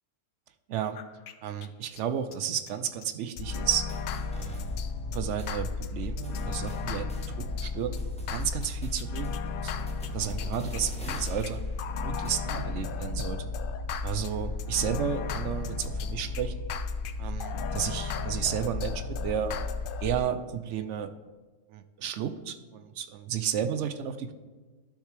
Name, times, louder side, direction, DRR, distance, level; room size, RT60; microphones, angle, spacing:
sound 1, 0.9-1.3 1.6-1.7 2.0-2.1 2.3-2.4 2.7-2.8 3.0-3.1 3.4-20.2, left 4 dB, 60° left, 0.5 m, -33 dB
voice 1, 1.4-3.9 4.3-4.6 5.1-7.1 7.6-8.0 8.3-9.4 9.6-11.6 12.0-13.5 14.0-16.5 17.2-19.5 20.0-21.1 21.7-24.3, right 8 dB, 75° right, 10 dB, 0.9 m, -32 dB
sound 2, 3.7-5.1 5.4-5.5 6.0-7.7 8.0-12.7, left 1 dB, 5° left, 1.0 m, -49 dB
12.0 x 6.4 x 3.3 m, 1.3 s
omnidirectional pair, 1.3 m